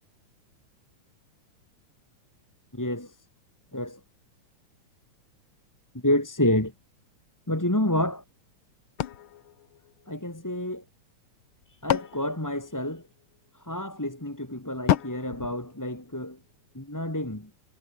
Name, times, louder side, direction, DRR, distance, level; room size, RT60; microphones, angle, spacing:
voice 1, 2.7-3.1 3.7-4.0 5.9-6.7 7.5-8.2 10.1-10.8 11.8-13.1 13.6-16.4 16.7-17.5, left 1 dB, 5° left, 1.7 m, -28 dB
sound 1, 9.0-10.5 11.4-13.4 14.9-16.5, left 12 dB, 60° left, 1.4 m, -31 dB
omnidirectional pair, 3.3 m